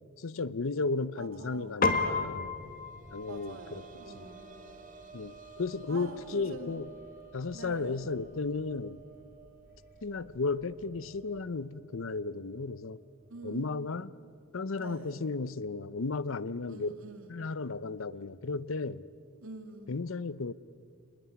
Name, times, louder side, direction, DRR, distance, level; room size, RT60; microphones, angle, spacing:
voice 1, 0.2-2.5 3.1-3.8 4.1-4.2 5.1-6.9 7.3-9.0 10.0-13.0 13.4-14.1 14.5-16.9 17.3-19.0 19.9-20.5, left 3 dB, 70° left, 0.7 m, -34 dB
voice 2, 1.2-1.9 3.3-4.5 5.9-6.8 7.5-8.1 13.3-13.8 14.8-15.2 16.7-17.3 19.4-19.9, right 2 dB, 75° right, 2.8 m, -45 dB
Piano, 1.8-11.4, left 4 dB, 45° left, 1.8 m, -38 dB
sound 1, 2.6-14.1 14.4-14.5 16.1-16.2, right 5 dB, 40° right, 2.4 m, -54 dB
26.0 x 20.0 x 9.4 m
head